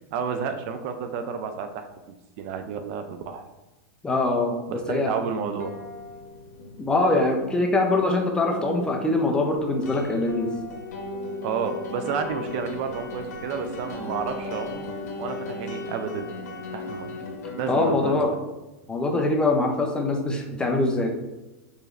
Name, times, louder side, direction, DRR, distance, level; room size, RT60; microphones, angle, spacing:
voice 1, 0.1-3.4 4.7-5.7 11.4-14.8 15.2-16.3 16.7-17.2 17.6-18.1, right 6 dB, 50° right, 8 dB, 0.4 m, -31 dB
voice 2, 4.0-5.2 6.8-10.5 17.7-18.3 18.9-21.1, left 2 dB, 10° left, 2 dB, 0.5 m, -23 dB
sound 1, 5.2-18.3, left 2 dB, 85° left, 0.9 m, -37 dB
4.8 x 3.1 x 2.5 m, 1.1 s
supercardioid pair, 140°, 9 cm